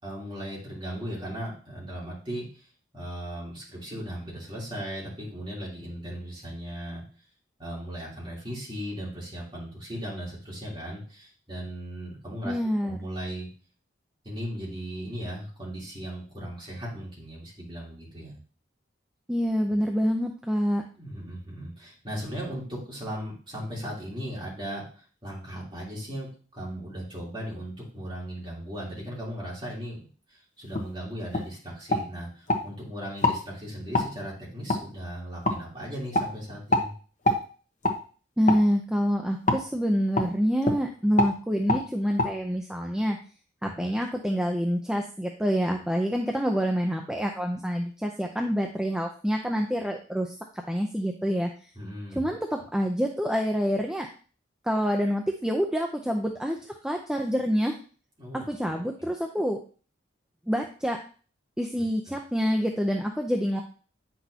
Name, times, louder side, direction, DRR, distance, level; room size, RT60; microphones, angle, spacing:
voice 1, 0.0-2.7 2.9-7.0 7.6-12.5 12.8-13.5 14.2-18.4 21.0-30.0 30.3-36.9 43.6-43.9 51.7-52.2 58.2-58.4, equal, 25° right, -5 dB, 3.3 m, -37 dB
voice 2, 12.4-13.0 19.3-20.8 38.4-43.2 43.6-51.5 52.2-54.1 54.6-56.6 56.8-57.8 58.3-59.6 60.5-61.0 61.6-63.6, equal, 5° right, 2 dB, 0.5 m, -27 dB
sound 1, 30.7-30.9 31.3-31.5 31.9-32.6 33.2-33.4 33.9-34.1 34.7-34.8 35.4-35.6 36.1-36.3 36.7-36.9 37.2-37.4 37.8-38.0 38.5-38.6 39.5-39.6 40.2-40.3 40.6-40.8 41.2-41.3 41.7-41.8 42.2-42.3, left 2 dB, 40° left, 1.1 m, -24 dB
9.0 x 6.1 x 2.8 m, 0.39 s
head